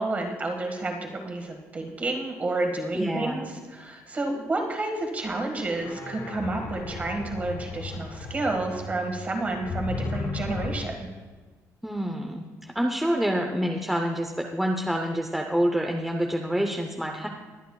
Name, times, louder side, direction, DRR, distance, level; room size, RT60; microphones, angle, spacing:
voice 1, 0.0-11.1, right 2 dB, 25° right, 3 dB, 1.7 m, -30 dB
voice 2, 2.9-3.4 11.8-17.3, equal, 5° right, 2 dB, 0.7 m, -27 dB
sound 1, 5.2-5.3 5.7-10.8, left 3 dB, 75° left, 3.6 m, -35 dB
21.5 x 9.1 x 2.3 m, 1.4 s
cardioid pair, 140°, 6 cm